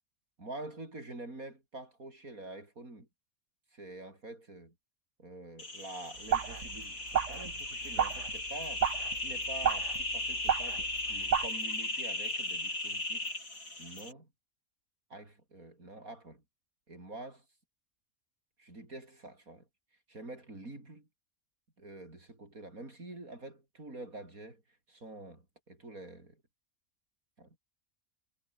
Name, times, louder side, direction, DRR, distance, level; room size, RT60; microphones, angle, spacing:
voice 1, 0.4-3.1 3.7-4.7 5.2-8.8 9.2-13.3 13.8-14.3 15.1-16.4 16.9-17.4 18.6-19.7 20.1-21.0 21.8-24.6 24.9-26.4 27.4-27.6, right 2 dB, 75° right, 6.4 m, -47 dB
sound 1, 5.6-14.1, left 2 dB, 75° left, 7.3 m, -37 dB
sound 2, 6.3-11.5, right 8 dB, 60° right, 1.4 m, -33 dB
omnidirectional pair, 1.5 m